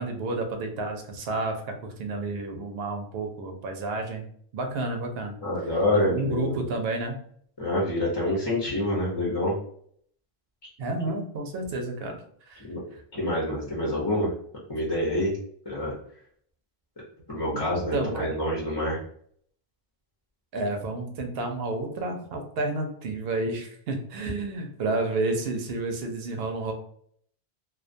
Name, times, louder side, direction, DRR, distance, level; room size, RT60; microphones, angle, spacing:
voice 1, 0.0-4.2 4.5-5.3 5.9-7.2 10.8-12.2 12.5-12.6 17.5-17.6 17.9-18.3 20.5-26.7, right 2 dB, 75° right, 4 dB, 0.8 m, -30 dB
voice 2, 5.4-6.6 7.6-9.5 12.7-12.8 13.1-14.3 14.7-15.3 15.7-16.0 17.3-19.0, left 1 dB, 30° left, -5 dB, 0.6 m, -27 dB
2.3 x 2.2 x 2.5 m, 0.63 s
omnidirectional pair, 1.1 m